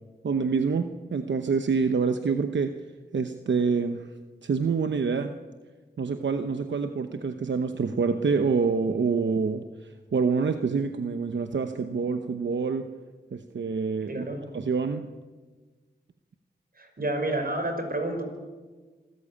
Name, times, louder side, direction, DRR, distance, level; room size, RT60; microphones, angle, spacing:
voice 1, 0.2-2.7 3.1-4.1 4.4-5.3 6.0-12.9 13.3-14.3 14.5-15.1, right 5 dB, 85° right, 8 dB, 1.0 m, -26 dB
voice 2, 14.1-14.4 16.8-18.2, right 1 dB, 55° right, 5 dB, 5.4 m, -29 dB
26.5 x 14.0 x 8.6 m, 1.3 s
cardioid pair, 50°, 18 cm